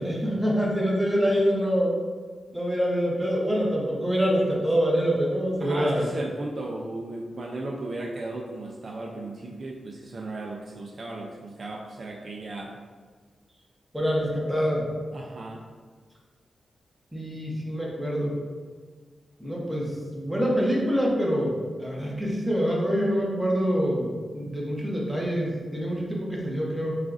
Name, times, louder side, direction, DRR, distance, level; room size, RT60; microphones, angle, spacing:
voice 1, 0.0-1.9 2.5-6.1 13.9-14.9 17.1-18.3 19.4-27.0, equal, 5° right, -4 dB, 1.0 m, -25 dB
voice 2, 5.6-12.8 15.1-15.6, right 2 dB, 50° right, 0 dB, 0.4 m, -35 dB
7.2 x 2.4 x 2.6 m, 1.5 s
wide cardioid pair, 115°, 0 cm